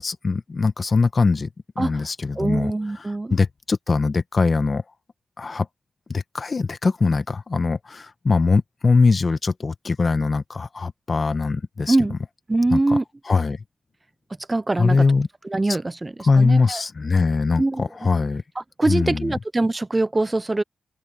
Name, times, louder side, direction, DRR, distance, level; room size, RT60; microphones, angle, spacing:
voice 1, 0.0-1.5 1.8-4.8 5.4-5.7 6.1-12.0 12.7-13.0 13.2-13.6 14.8-15.3 15.7-15.8 16.2-18.4 18.9-19.3, left 4 dB, 45° left, 1.2 m, -21 dB
voice 2, 1.8-2.1 2.4-3.3 11.9-12.2 12.5-13.0 14.5-15.0 15.5-16.8 17.6-17.8 18.6-20.6, right 2 dB, 25° right, 0.4 m, -23 dB
cardioid pair, 75°, 0 cm